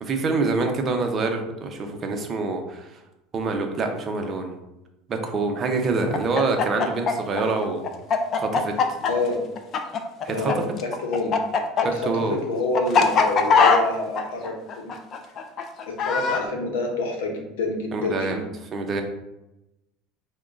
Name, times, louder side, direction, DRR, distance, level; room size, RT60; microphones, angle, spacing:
voice 1, 0.0-2.9 3.3-4.6 5.1-7.8 8.3-8.7 10.2-10.6 12.1-12.4 17.9-18.4 18.7-19.0, right 3 dB, 35° right, 4 dB, 0.6 m, -26 dB
Chicken rooster, 6.1-10.5 10.8-16.4, left 5 dB, 45° left, 0.4 m, -21 dB
voice 2, 9.1-9.4 10.3-11.3 11.9-14.9 15.9-18.4, left 2 dB, 85° left, 2 dB, 0.7 m, -28 dB
4.6 x 2.2 x 2.4 m, 0.93 s
supercardioid pair, 90°, 0 cm